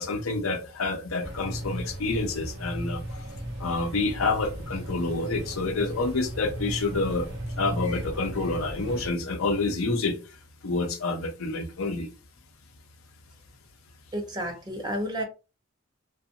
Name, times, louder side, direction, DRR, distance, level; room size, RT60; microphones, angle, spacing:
voice 1, 0.0-3.3 3.6-7.3 7.6-10.2 10.6-12.1, left 3 dB, 90° left, 0.6 m, -28 dB
sound 1, 1.2-9.1, right 1 dB, 55° right, 0.6 m, -36 dB
voice 2, 14.1-15.2, equal, 20° right, 0.6 m, -31 dB
2.7 x 2.3 x 2.5 m
head